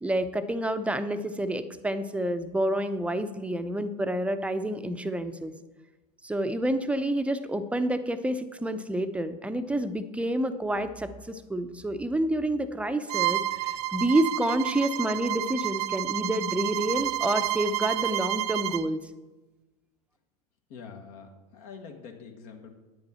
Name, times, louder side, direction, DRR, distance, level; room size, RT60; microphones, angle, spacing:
voice 1, 0.0-5.5 6.2-19.0, right 1 dB, 5° right, 10 dB, 0.7 m, -28 dB
Bowed string instrument, 13.1-18.9, right 16 dB, 65° right, 0.4 m, -30 dB
voice 2, 20.7-22.7, left 5 dB, 60° left, 3 dB, 1.4 m, -45 dB
9.5 x 8.7 x 4.3 m, 1.1 s
hypercardioid pair, 85°, 21 cm